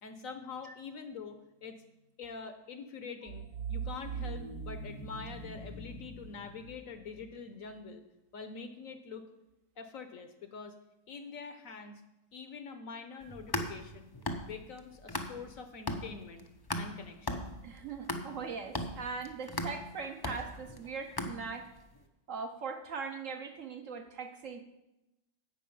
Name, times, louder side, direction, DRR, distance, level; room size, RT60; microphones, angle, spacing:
voice 1, 0.0-1.8 2.2-8.0 8.3-9.2 9.8-10.8 11.1-12.0 12.3-14.1 14.4-16.5 16.7-17.5, left 5 dB, 60° left, 8 dB, 1.1 m, -45 dB
sound 1, 3.3-6.1, right 7 dB, 90° right, 0.4 m, -40 dB
sound 2, 3.5-7.8, left 1 dB, 85° left, 2.5 m, -48 dB
sound 3, 13.2-15.6 15.9-21.8, left 1 dB, 30° left, 0.4 m, -38 dB
voice 2, 17.6-21.7 22.3-24.6, right 5 dB, 55° right, 5 dB, 1.1 m, -40 dB
11.0 x 8.0 x 5.5 m, 0.94 s
omnidirectional pair, 1.8 m